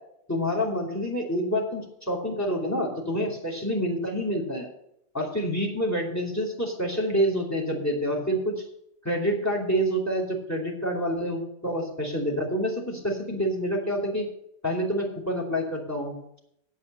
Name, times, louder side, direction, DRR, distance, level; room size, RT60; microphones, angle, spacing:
voice 1, 0.3-4.7 5.1-8.6 9.0-14.3 14.6-16.4, equal, 10° left, 0 dB, 2.8 m, -27 dB
8.3 x 8.2 x 7.5 m, 0.76 s
omnidirectional pair, 1.8 m